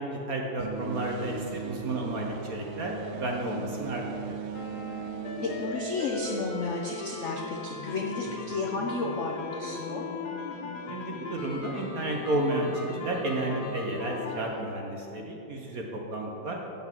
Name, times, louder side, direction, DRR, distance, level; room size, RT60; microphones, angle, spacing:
voice 1, 0.0-4.4 10.9-16.6, right 1 dB, 55° right, 0 dB, 1.1 m, -32 dB
sound 1, 0.6-6.6, right 6 dB, 80° right, 1.5 m, -38 dB
sound 2, 4.5-14.6, left 3 dB, 55° left, 1.3 m, -38 dB
voice 2, 5.4-10.1, left 3 dB, 80° left, -1 dB, 0.6 m, -32 dB
7.9 x 7.2 x 7.4 m, 3.0 s
omnidirectional pair, 2.4 m